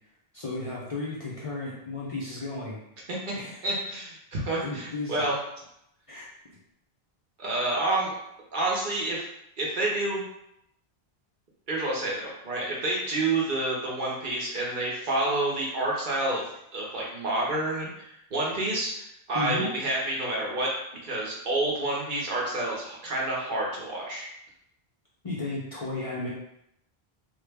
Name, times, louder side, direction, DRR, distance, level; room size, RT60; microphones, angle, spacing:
voice 1, 0.3-2.8 3.4-3.6 4.6-5.2 6.1-6.3 19.3-19.7 25.2-26.3, left 2 dB, 40° left, -6 dB, 0.5 m, -34 dB
voice 2, 3.6-5.4 7.4-8.2 8.5-9.2 9.6-10.3 11.7-16.4 16.7-20.7 21.0-24.3, right 2 dB, 55° right, -4 dB, 0.9 m, -29 dB
3.1 x 2.1 x 3.4 m, 0.78 s
omnidirectional pair, 1.1 m